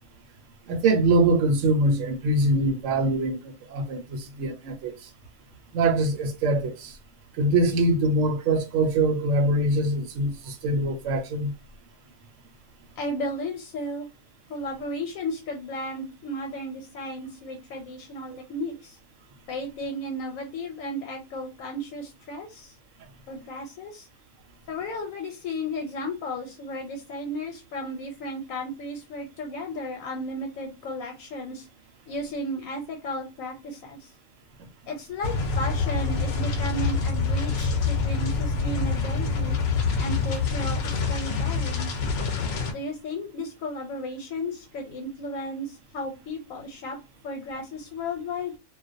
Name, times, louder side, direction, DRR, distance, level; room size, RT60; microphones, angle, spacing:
voice 1, 0.7-3.4 3.7-4.9 5.7-6.9 7.4-11.5 18.3-18.4, right 2 dB, 75° right, 0.9 m, -23 dB
voice 2, 13.0-14.1 14.5-19.0 19.5-22.7 23.3-24.1 24.7-31.7 32.1-34.1 34.9-39.6 40.0-41.9 42.7-47.0 47.2-48.5, left 1 dB, 85° left, 1.0 m, -34 dB
sound 1, 35.2-42.7, left 4 dB, 65° left, 0.7 m, -26 dB
2.3 x 2.1 x 2.5 m
omnidirectional pair, 1.4 m